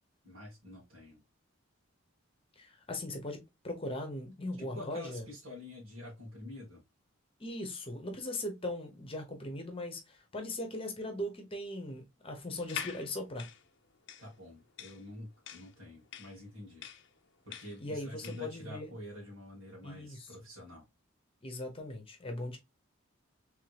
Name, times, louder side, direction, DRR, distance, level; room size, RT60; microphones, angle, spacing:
voice 1, 0.2-1.2 4.6-6.8 14.2-16.9 17.4-20.8, left 1 dB, 70° right, 1.9 m, -47 dB
voice 2, 2.6-5.2 7.4-13.5 17.8-18.9 19.8-20.3 21.4-22.6, left 1 dB, 25° left, 0.9 m, -39 dB
sound 1, 12.6-18.5, left 8 dB, 60° left, 0.6 m, -45 dB
3.6 x 3.4 x 3.3 m
head